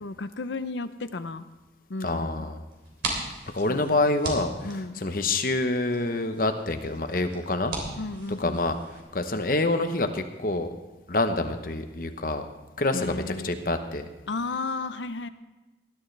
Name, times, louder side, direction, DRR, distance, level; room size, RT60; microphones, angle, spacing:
voice 1, 0.0-1.5 1.9-2.5 3.7-3.9 4.6-5.0 8.0-8.7 12.9-13.5 14.3-15.3, left 3 dB, 80° left, 12 dB, 0.7 m, -33 dB
voice 2, 2.0-2.6 3.5-7.7 8.4-8.8 9.1-10.7 11.1-12.5 12.8-14.1, left 2 dB, 50° left, 7 dB, 0.9 m, -27 dB
sound 1, 2.7-9.0, right 2 dB, 90° right, 3.1 m, -38 dB
19.0 x 11.5 x 3.3 m, 1.1 s
head